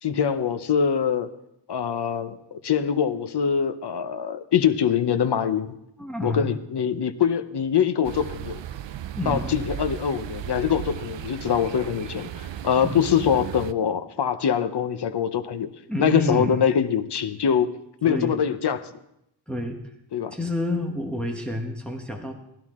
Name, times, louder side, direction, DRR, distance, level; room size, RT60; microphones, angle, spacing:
voice 1, 0.0-1.3 1.7-2.4 2.6-5.7 6.2-8.6 9.3-15.7 16.0-18.8 20.1-20.3, left 8 dB, 60° left, 9 dB, 0.8 m, -24 dB
voice 2, 6.0-6.5 9.1-9.5 12.8-13.0 15.9-16.6 18.1-18.4 19.5-19.8 20.3-22.3, left 1 dB, ahead, 1 dB, 1.0 m, -28 dB
sound 1, 8.0-13.7, right 11 dB, 70° right, 0.5 m, -35 dB
18.0 x 11.0 x 3.6 m, 0.80 s
wide cardioid pair, 175°, 46 cm